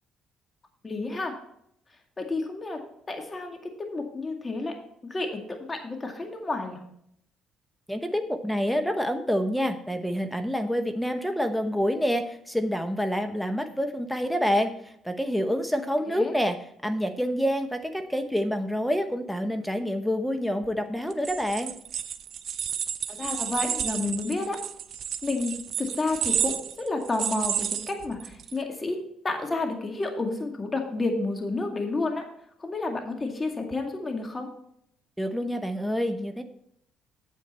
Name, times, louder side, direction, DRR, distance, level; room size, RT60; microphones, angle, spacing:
voice 1, 0.8-1.3 2.2-2.8 3.1-4.7 5.0-6.8 16.1-16.4 23.1-24.6 25.2-25.5 25.8-29.0 29.2-32.2 32.6-34.5, left 3 dB, 25° left, 3 dB, 2.2 m, -30 dB
voice 2, 7.9-14.7 15.0-16.6 16.8-21.7 35.2-36.4, equal, 5° left, 8 dB, 1.0 m, -27 dB
sound 1, 21.1-28.5, right 9 dB, 60° right, 0.6 m, -31 dB
8.5 x 8.3 x 4.3 m, 0.71 s
supercardioid pair, 70°, 0 cm